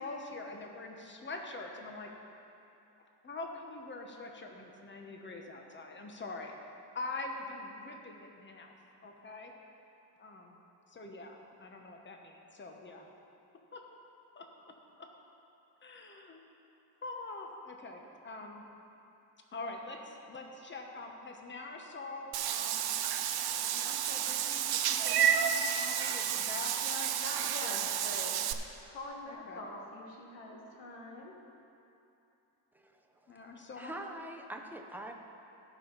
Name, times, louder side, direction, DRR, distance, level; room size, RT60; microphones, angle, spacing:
voice 1, 0.0-2.1 3.2-6.5 6.9-8.7 9.0-9.5 10.2-10.6 10.9-13.1 13.7-13.8 14.3-14.5 15.8-16.4 17.0-18.7 19.5-22.9 23.6-27.1 27.6-27.9 29.3-29.7 33.3-33.9, left 2 dB, 25° left, 2 dB, 1.1 m, -44 dB
Meow / Water / Bathtub (filling or washing), 22.3-28.5, right 9 dB, 60° right, 0.6 m, -31 dB
voice 2, 27.1-28.5 28.8-31.4, left 2 dB, 90° left, -1 dB, 1.8 m, -44 dB
voice 3, 32.7-35.1, right 1 dB, 5° right, 2 dB, 0.8 m, -45 dB
16.5 x 5.6 x 4.0 m, 2.8 s
cardioid pair, 115°, 43 cm